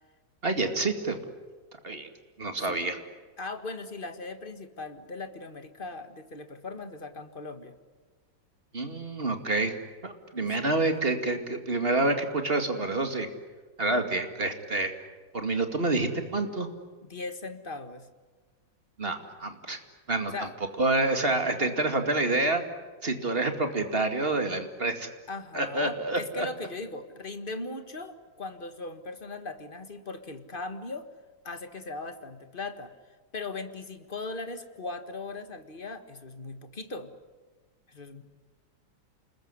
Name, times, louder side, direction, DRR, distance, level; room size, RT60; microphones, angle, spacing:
voice 1, 0.4-1.2 1.8-2.1 2.4-3.0 8.7-9.7 10.0-13.3 13.8-14.9 15.3-16.7 19.0-19.8 20.1-20.3 20.8-22.6 23.0-25.1 25.5-26.5, right 2 dB, 30° right, 6 dB, 2.4 m, -27 dB
voice 2, 2.6-2.9 3.4-7.7 10.4-10.7 17.0-18.1 20.3-20.5 25.3-31.1 31.4-37.1 37.9-38.2, left 3 dB, 30° left, 9 dB, 1.7 m, -39 dB
29.0 x 21.0 x 9.8 m, 1.4 s
omnidirectional pair, 2.1 m